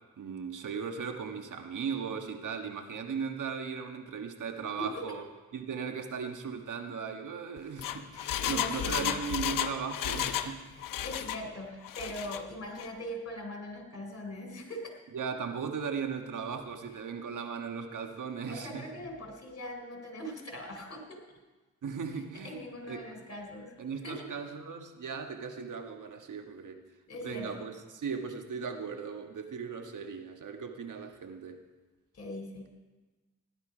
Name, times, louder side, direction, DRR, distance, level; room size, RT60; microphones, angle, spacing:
voice 1, 0.2-5.2 5.5-10.7 15.1-18.9 21.8-23.0 23.8-26.8 27.2-31.6, right 6 dB, 70° right, 5 dB, 1.5 m, -37 dB
Engine, 7.6-10.5 10.8-11.4 11.8-12.4 12.8-12.9, left 10 dB, 90° left, 0.7 m, -33 dB
voice 2, 8.1-9.4 11.0-14.9 18.5-21.2 22.4-23.7 24.0-24.4 27.1-27.6 32.1-32.7, left 1 dB, 50° left, 3 dB, 3.6 m, -41 dB
16.0 x 11.0 x 5.0 m, 1.2 s
cardioid pair, 55°, 32 cm